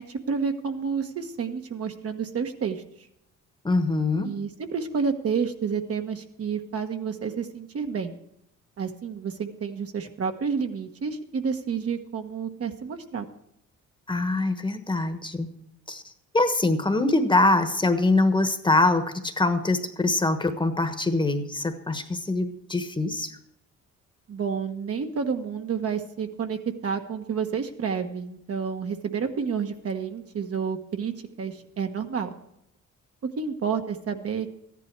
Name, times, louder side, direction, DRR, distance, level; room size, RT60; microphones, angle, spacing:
voice 1, 0.0-3.1 4.2-8.1 8.8-13.3 24.3-32.3 33.4-34.5, right 6 dB, 50° right, 5 dB, 1.3 m, -30 dB
voice 2, 3.6-4.3 14.1-15.5 15.9-16.0 16.3-23.3, left 2 dB, 15° left, 8 dB, 1.3 m, -23 dB
13.5 x 10.5 x 4.6 m, 0.77 s
cardioid pair, 90°, 30 cm